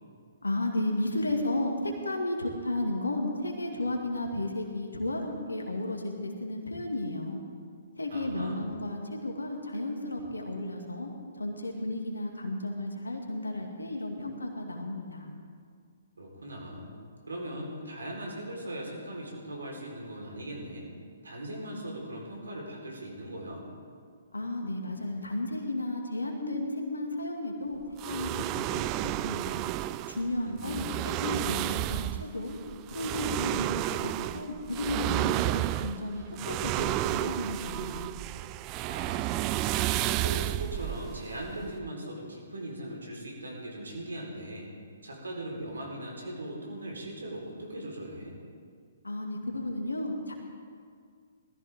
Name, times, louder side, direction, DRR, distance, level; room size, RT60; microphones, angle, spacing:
voice 1, 0.4-7.4 8.0-11.1 11.4-15.3 24.3-29.7 30.1-32.6 32.9-38.1 49.0-50.3, left 1 dB, 80° left, 2 dB, 2.2 m, -33 dB
voice 2, 8.1-8.7 16.2-16.9 17.3-20.9 21.2-23.7 30.4-31.0 38.9-39.5 39.9-44.7 45.0-48.4, right 1 dB, 75° right, -1 dB, 4.2 m, -39 dB
sound 1, 28.0-41.9, right 16 dB, 30° right, 0.3 m, -32 dB
19.5 x 14.0 x 3.7 m, 2.1 s
figure-of-eight pair, 125°, 0 cm